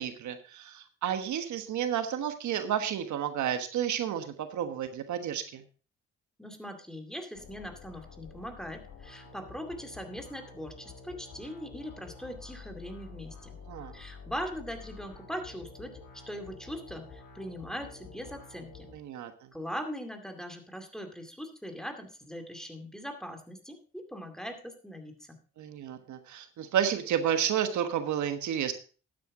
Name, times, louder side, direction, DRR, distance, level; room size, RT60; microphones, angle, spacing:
voice 1, 0.0-5.6 13.7-13.9 18.9-19.3 25.6-28.7, right 9 dB, 70° right, 8 dB, 1.3 m, -31 dB
voice 2, 6.4-13.6 13.9-16.0 16.3-18.9 19.5-25.4, equal, ahead, 4 dB, 2.3 m, -41 dB
sound 1, 7.3-18.9, left 4 dB, 85° left, 4.0 m, -49 dB
12.0 x 9.3 x 3.7 m, 0.37 s
cardioid pair, 90°, 30 cm